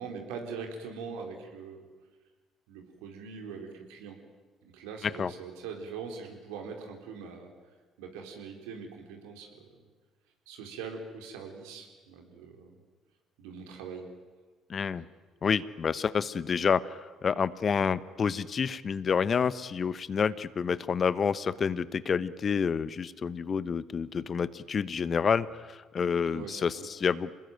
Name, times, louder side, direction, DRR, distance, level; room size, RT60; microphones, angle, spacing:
voice 1, 0.0-1.8 2.7-4.2 4.6-7.5 8.0-9.6 10.5-12.7 13.4-14.1 26.3-26.9, right 5 dB, 75° right, 3 dB, 4.2 m, -42 dB
voice 2, 14.7-15.0 15.4-27.3, left 6 dB, 45° left, 17 dB, 1.0 m, -29 dB
27.0 x 20.0 x 9.2 m, 1.4 s
hypercardioid pair, 50°, 0 cm